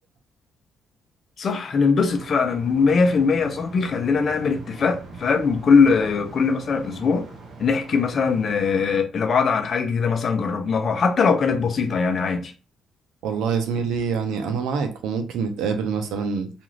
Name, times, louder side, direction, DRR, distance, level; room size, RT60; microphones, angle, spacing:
voice 1, 1.4-7.3 7.6-12.5, left 5 dB, 50° left, 0.6 m, -21 dB
sound 1, 2.0-9.0, right 3 dB, 60° right, 0.9 m, -42 dB
voice 2, 13.2-16.5, right 6 dB, 85° right, 0.6 m, -25 dB
2.5 x 2.4 x 3.1 m
cardioid pair, 90°, 0 cm